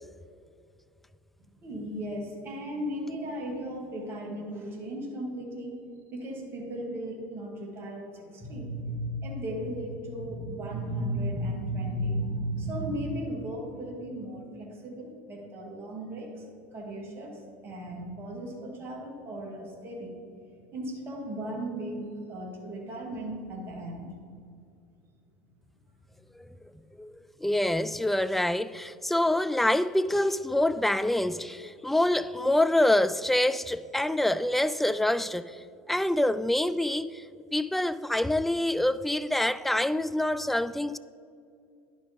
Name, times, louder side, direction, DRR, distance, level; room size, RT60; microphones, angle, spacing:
voice 1, 1.6-5.8 6.1-16.4 16.7-20.1 20.7-24.1, right 1 dB, 40° right, 2.1 m, -35 dB
voice 2, 27.4-37.2 37.5-41.0, left 1 dB, 5° left, 0.3 m, -26 dB
10.5 x 5.2 x 5.1 m
hypercardioid pair, 85°, 6 cm